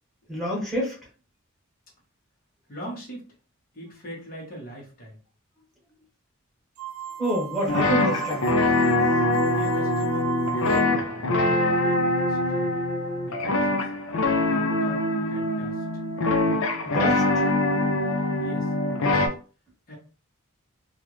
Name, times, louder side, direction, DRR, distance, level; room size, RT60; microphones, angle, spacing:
voice 1, 0.3-1.0 7.2-8.5 16.8-17.5, equal, ahead, -4 dB, 1.6 m, -28 dB
voice 2, 2.7-3.3 3.7-5.2 9.5-12.7 13.2-13.9 14.4-15.8 18.4-19.2 19.9-20.0, right 1 dB, 40° left, -3 dB, 1.3 m, -42 dB
sound 1, 6.8-11.2, right 10 dB, 70° right, 0.3 m, -36 dB
sound 2, 7.7-19.3, left 2 dB, 65° left, 0.6 m, -23 dB
3.5 x 2.5 x 3.0 m, 0.37 s
head